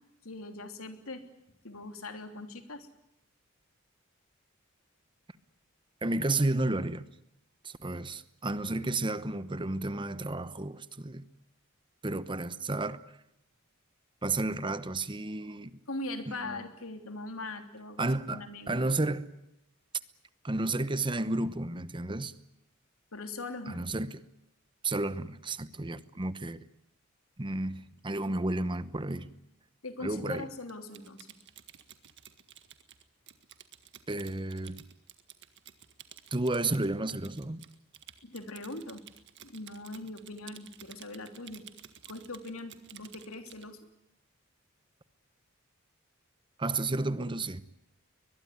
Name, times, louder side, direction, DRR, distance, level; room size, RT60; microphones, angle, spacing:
voice 1, 0.2-1.2 1.6-2.9 15.9-18.8 23.1-23.8 29.8-31.2 38.2-39.0 39.4-41.6 42.1-43.8, left 2 dB, 85° left, 3.2 m, -41 dB
voice 2, 6.0-7.1 7.6-11.3 12.0-13.0 14.2-15.7 16.4-16.6 18.0-19.3 20.4-22.3 23.7-24.2 24.8-26.7 27.4-29.3 30.0-30.5 34.1-34.8 36.3-37.6 46.6-47.6, right 2 dB, 25° right, 0.9 m, -32 dB
Typing, 30.7-43.7, right 10 dB, 60° right, 1.8 m, -53 dB
22.0 x 22.0 x 9.5 m
head